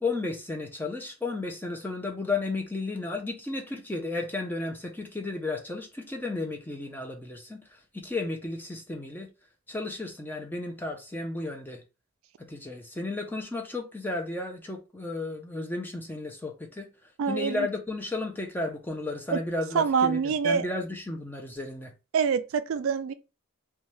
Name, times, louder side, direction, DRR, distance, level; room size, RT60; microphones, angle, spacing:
voice 1, 0.0-9.3 9.7-11.8 12.4-16.9 17.3-21.9, left 2 dB, 10° left, 0.5 m, -33 dB
voice 2, 17.2-17.7 19.3-19.4 19.7-20.6 22.1-23.1, right 6 dB, 70° right, 0.3 m, -25 dB
2.7 x 2.3 x 3.1 m
head